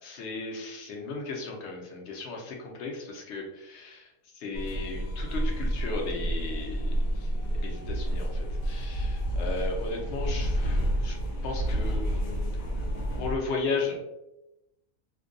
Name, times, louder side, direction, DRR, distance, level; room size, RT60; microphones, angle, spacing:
voice 1, 0.0-11.2 11.4-12.6 13.2-14.0, left 3 dB, 65° left, 1 dB, 0.8 m, -36 dB
sound 1, 4.5-13.4, equal, 85° left, 1.0 m, -29 dB
2.5 x 2.2 x 2.5 m, 0.91 s
omnidirectional pair, 1.4 m